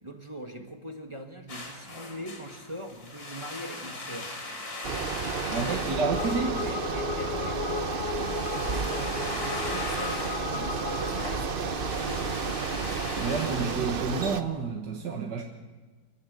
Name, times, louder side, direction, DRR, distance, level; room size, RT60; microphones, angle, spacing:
voice 1, 0.0-4.3 5.5-6.0 6.4-12.8, equal, 20° right, 3 dB, 1.4 m, -42 dB
sound 1, 1.5-14.5, left 2 dB, 60° left, 3.7 m, -40 dB
Bicycle, 4.8-14.4, right 5 dB, 40° right, 0.9 m, -32 dB
voice 2, 5.5-6.5 13.2-15.4, right 5 dB, 85° right, 1 dB, 2.2 m, -30 dB
sound 2, 5.8-11.5, left 9 dB, 85° left, 1.5 m, -36 dB
29.5 x 12.5 x 8.1 m, 1.3 s
omnidirectional pair, 1.8 m